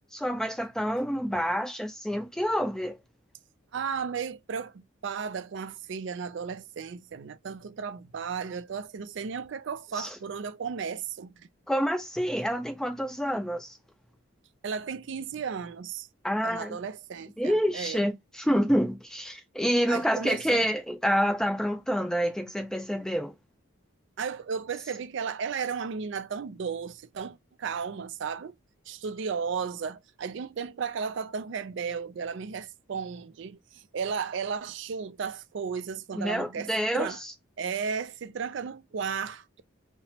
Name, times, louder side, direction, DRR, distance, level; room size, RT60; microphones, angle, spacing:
voice 1, 0.1-3.0 10.0-10.2 11.7-13.8 16.2-16.8 17.4-23.3 36.2-37.3, equal, 5° left, 0.5 m, -28 dB
voice 2, 3.7-11.5 14.6-16.1 16.4-18.0 19.9-20.7 24.2-28.5 28.9-37.2 37.6-39.6, right 6 dB, 60° right, 0.4 m, -34 dB
2.9 x 2.1 x 2.7 m
head